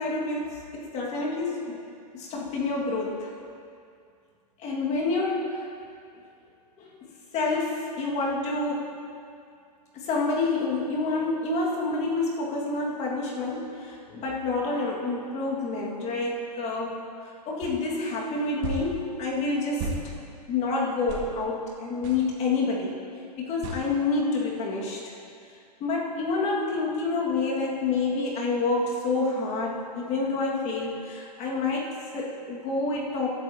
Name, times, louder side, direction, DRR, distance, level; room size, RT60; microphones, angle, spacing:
voice 1, 0.0-1.8 2.1-3.3 4.6-5.7 6.8-7.0 7.3-8.9 9.9-20.2 20.5-23.1 23.4-25.1 25.8-33.4, left 3 dB, 30° left, -3 dB, 2.1 m, -28 dB
sound 1, 17.6-17.8 18.6-18.9 19.8-20.0 21.1-21.3 22.0-22.2 23.6-23.8, right 3 dB, 45° right, 1.9 m, -33 dB
18.0 x 11.5 x 2.9 m, 2.4 s
hypercardioid pair, 115°, 21 cm